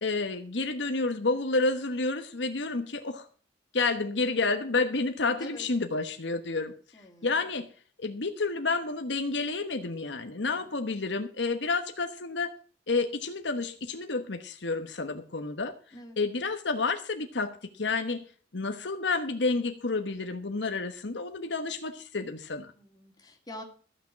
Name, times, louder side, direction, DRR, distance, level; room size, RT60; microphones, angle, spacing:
voice 1, 0.0-3.3 3.7-6.7 7.2-7.7 8.0-12.5 12.9-15.7 16.2-22.7, left 3 dB, 75° left, 7 dB, 1.2 m, -30 dB
voice 2, 6.9-7.5 10.5-10.9 15.9-16.2 22.7-23.6, left 1 dB, 20° left, 2 dB, 2.5 m, -46 dB
14.0 x 6.7 x 7.5 m, 0.42 s
head